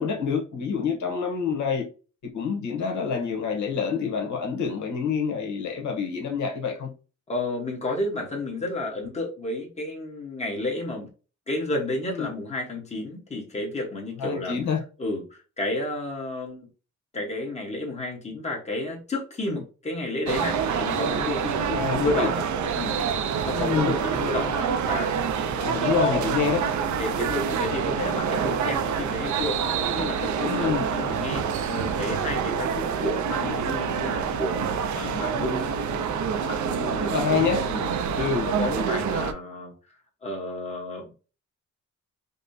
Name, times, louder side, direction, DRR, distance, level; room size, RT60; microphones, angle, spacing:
voice 1, 0.0-1.9 2.2-6.9 12.1-12.3 14.2-14.8 19.5-19.6 21.7-22.3 23.5-23.9 25.6-26.6 30.4-30.8 37.0-37.6 38.2-38.5, left 6 dB, 75° left, 1.0 m, -27 dB
voice 2, 7.3-11.1 11.5-14.6 15.0-16.7 17.1-22.5 22.7-23.0 23.4-25.1 25.5-26.7 27.0-36.2 36.4-37.1 37.7-39.7 40.2-41.1, left 2 dB, 20° left, 1.1 m, -31 dB
sound 1, 20.3-39.3, right 7 dB, 75° right, 0.5 m, -27 dB
5.2 x 2.1 x 2.6 m
wide cardioid pair, 175°, 30 cm